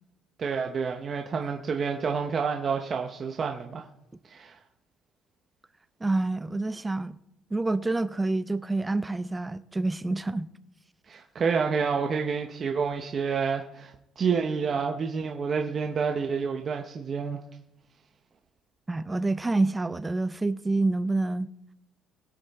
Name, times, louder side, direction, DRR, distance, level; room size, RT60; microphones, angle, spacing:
voice 1, 0.4-3.9 4.3-4.6 11.1-17.4, right 5 dB, 30° right, 0.8 m, -29 dB
voice 2, 6.0-7.2 7.5-10.5 18.9-21.5, right 2 dB, 10° right, 0.4 m, -27 dB
21.5 x 8.3 x 3.5 m
cardioid pair, 170°, 0 cm